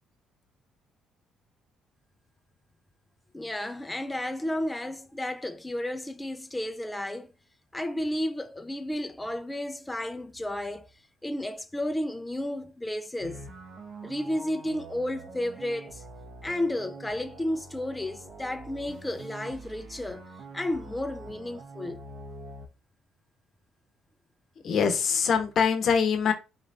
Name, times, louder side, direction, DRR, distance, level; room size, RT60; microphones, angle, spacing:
voice 1, 3.3-7.3 7.7-10.9 11.2-13.4 14.0-16.0 16.4-20.2 20.5-22.0, left 1 dB, 15° left, 0.5 m, -32 dB
sound 1, 13.2-22.7, right 3 dB, 55° right, 0.9 m, -45 dB
voice 2, 24.6-26.3, left 6 dB, 60° left, 0.9 m, -23 dB
4.1 x 2.5 x 3.3 m
supercardioid pair, 60°, 0 cm